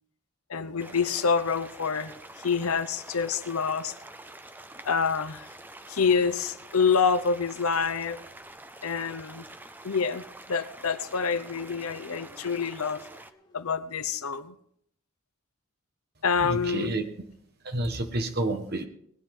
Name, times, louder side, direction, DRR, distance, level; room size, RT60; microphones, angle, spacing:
voice 1, 0.5-2.1 2.4-3.9 4.8-5.5 5.9-8.3 8.8-9.4 9.8-10.2 10.5-13.0 13.5-14.6 16.2-17.0, left 5 dB, 80° left, 12 dB, 0.8 m, -27 dB
sound 1, 0.8-13.3, right 1 dB, 10° right, 0.5 m, -47 dB
Motorcycle, 10.8-14.5, left 2 dB, 20° left, 2.1 m, -59 dB
voice 2, 16.4-17.0 17.6-18.9, right 1 dB, 45° right, 6 dB, 1.2 m, -29 dB
20.0 x 9.7 x 3.7 m, 0.69 s
head